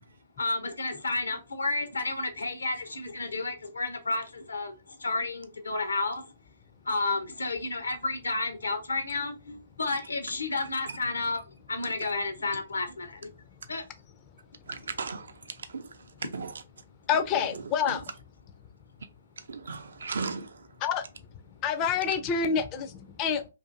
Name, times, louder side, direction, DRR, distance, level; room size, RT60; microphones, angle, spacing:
voice 1, 0.4-6.3 6.8-13.3 13.7-13.8, left 3 dB, 80° left, 0.6 m, -31 dB
voice 2, 14.6-16.0 16.3-16.6 17.5-18.0 19.4-20.7, right 4 dB, 70° right, 0.4 m, -37 dB
voice 3, 17.1-18.0 20.8-21.0 21.6-23.5, left 7 dB, 25° left, 0.4 m, -27 dB
2.5 x 2.4 x 2.4 m
figure-of-eight pair, 130°, 0 cm